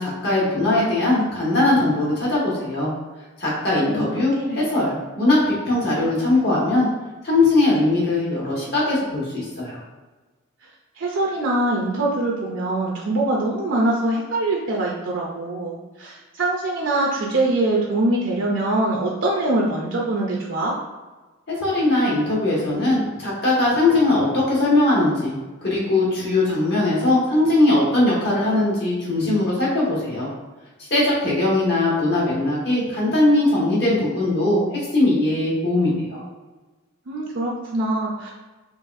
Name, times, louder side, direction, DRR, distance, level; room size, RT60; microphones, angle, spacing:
voice 1, 0.0-2.9 3.4-6.9 7.2-9.8 21.5-30.3 30.9-36.2, left 2 dB, 55° left, -6 dB, 1.5 m, -20 dB
voice 2, 11.0-20.8 37.1-38.3, right 2 dB, 60° right, -2 dB, 0.5 m, -23 dB
3.9 x 3.0 x 2.6 m, 1.2 s
head